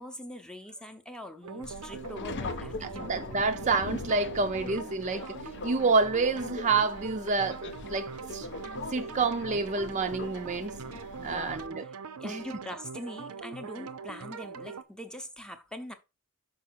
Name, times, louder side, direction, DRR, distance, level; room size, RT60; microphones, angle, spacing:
voice 1, 0.0-3.3 11.2-11.9 12.2-15.9, left 1 dB, 5° left, 0.7 m, -43 dB
sound 1, 1.4-14.8, right 5 dB, 80° right, 0.6 m, -42 dB
Subway metro underground, 1.6-11.7, left 3 dB, 55° left, 0.5 m, -41 dB
voice 2, 2.8-5.2 5.6-8.5 8.9-10.8 11.2-11.8 12.2-12.4, right 4 dB, 35° right, 0.5 m, -28 dB
5.6 x 5.0 x 4.5 m
head